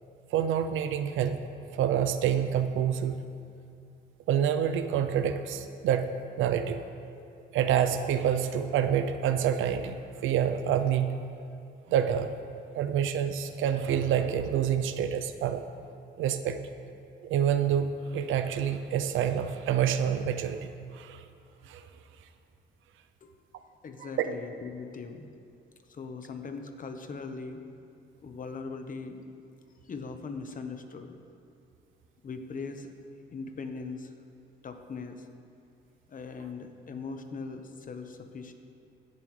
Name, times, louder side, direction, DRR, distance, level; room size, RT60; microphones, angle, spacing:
voice 1, 0.3-1.4 1.7-3.3 4.3-6.8 7.5-10.0 10.2-11.2 11.9-12.3 12.7-15.6 16.2-16.6 17.2-21.2 21.7-21.8 24.0-24.1, right 9 dB, 85° right, 9 dB, 0.5 m, -27 dB
voice 2, 23.6-25.3 25.9-27.6 28.2-29.2 29.8-31.2 32.2-32.9 33.3-34.1 34.6-35.3 36.1-38.5, left 4 dB, 45° left, 6 dB, 1.0 m, -40 dB
16.0 x 7.3 x 3.2 m, 2.5 s
cardioid pair, 90°, 20 cm